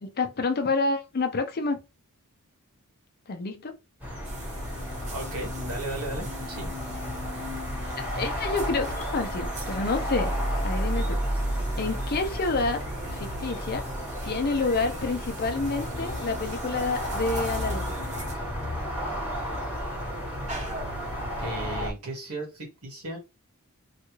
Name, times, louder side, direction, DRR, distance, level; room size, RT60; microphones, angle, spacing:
voice 1, 0.0-1.8 3.3-3.7 8.0-10.4 10.6-11.2 11.8-12.8 13.1-13.8 14.2-18.0, left 3 dB, 45° left, 0.5 m, -28 dB
sound 1, 4.0-21.9, equal, 5° right, 1.2 m, -32 dB
sound 2, 4.2-21.7, equal, 30° right, 0.9 m, -43 dB
voice 2, 5.1-6.7 21.4-23.2, right 2 dB, 90° right, 1.6 m, -35 dB
3.2 x 2.4 x 3.1 m
head